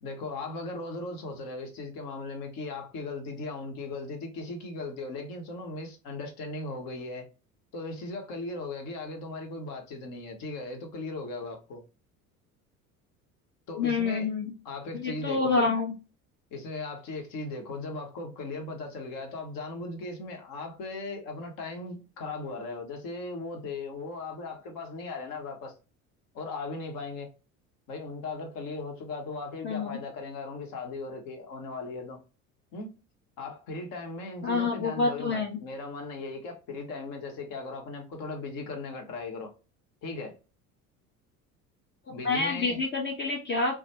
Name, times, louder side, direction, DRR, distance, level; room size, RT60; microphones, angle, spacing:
voice 1, 0.0-7.3 7.7-11.8 13.7-14.3 14.6-15.7 16.5-25.7 26.3-27.3 27.9-32.2 32.7-32.9 33.4-39.5 40.0-40.3 42.1-42.8, left 3 dB, 50° left, 0.9 m, -38 dB
voice 2, 13.8-14.5 14.9-15.9 29.6-30.0 34.4-35.6 42.2-43.8, left 4 dB, 25° left, 0.5 m, -27 dB
2.3 x 2.3 x 2.8 m
figure-of-eight pair, 65°, 43 cm